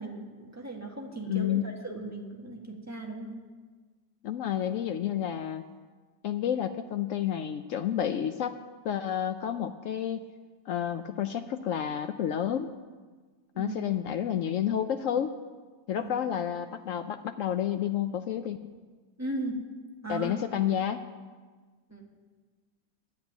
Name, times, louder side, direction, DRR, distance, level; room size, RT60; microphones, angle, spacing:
voice 1, 0.0-3.4 13.5-13.8 16.0-16.1 19.2-19.6 20.0-20.3 21.9-22.1, right 2 dB, 10° right, 0 dB, 1.4 m, -37 dB
voice 2, 1.2-1.7 4.2-5.6 6.2-8.6 8.8-10.2 10.7-12.7 13.6-15.3 15.9-18.8 20.1-21.0, left 10 dB, 90° left, 8 dB, 0.7 m, -30 dB
11.5 x 8.5 x 9.2 m, 1.4 s
omnidirectional pair, 2.0 m